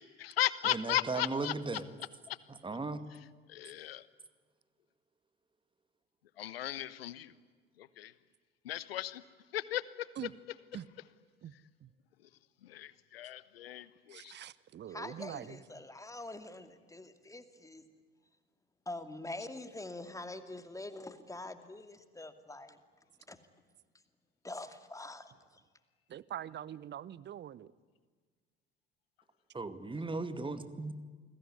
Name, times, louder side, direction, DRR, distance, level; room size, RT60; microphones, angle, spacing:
voice 1, 0.0-1.5 2.3-2.4 3.5-4.1 6.4-7.3 7.8-8.1 8.6-9.2 9.5-10.1 12.6-14.3, left 13 dB, 70° left, 18 dB, 1.2 m, -36 dB
voice 2, 0.7-1.8 2.5-3.0 29.5-30.9, right 3 dB, 15° right, 12 dB, 2.3 m, -37 dB
voice 3, 14.1-15.6 26.1-27.7, right 11 dB, 35° right, 21 dB, 1.0 m, -44 dB
voice 4, 14.9-17.8 18.9-22.8 23.3-23.4 24.4-25.6, left 2 dB, 10° left, 9 dB, 2.5 m, -45 dB
29.0 x 21.0 x 9.8 m, 1.5 s
figure-of-eight pair, 60°, 31 cm